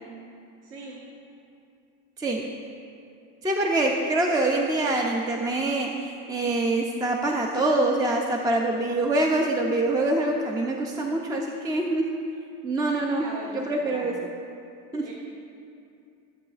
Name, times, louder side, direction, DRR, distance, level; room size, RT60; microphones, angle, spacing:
voice 1, 0.6-1.0 13.1-14.1 15.0-15.1, right 2 dB, 55° right, -4 dB, 1.2 m, -40 dB
voice 2, 3.4-12.1 12.6-13.2 13.5-14.2 14.9-15.1, right 2 dB, 15° right, 1 dB, 0.4 m, -25 dB
14.0 x 7.7 x 2.4 m, 2.5 s
cardioid pair, 140°, 30 cm